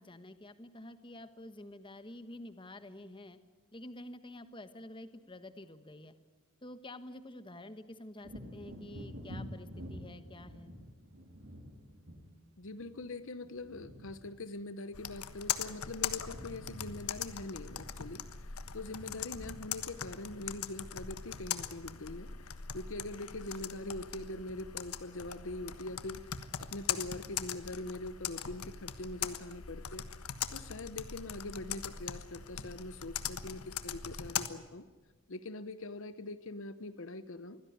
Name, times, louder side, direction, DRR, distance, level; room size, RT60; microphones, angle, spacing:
voice 1, 0.0-3.4 3.7-6.1 6.6-10.7, left 1 dB, 25° left, 11 dB, 1.3 m, -49 dB
Wind / Thunder, 8.2-15.8 16.1-23.3 23.7-23.9, equal, 60° right, 4.3 m, -50 dB
voice 2, 12.6-22.3 22.7-26.3 26.6-30.0 30.5-34.9 35.3-37.6, left 2 dB, 60° left, 13 dB, 1.0 m, -43 dB
Computer keyboard, 14.9-34.5, left 9 dB, 85° left, 1.4 m, -41 dB
24.0 x 16.5 x 9.5 m, 1.4 s
head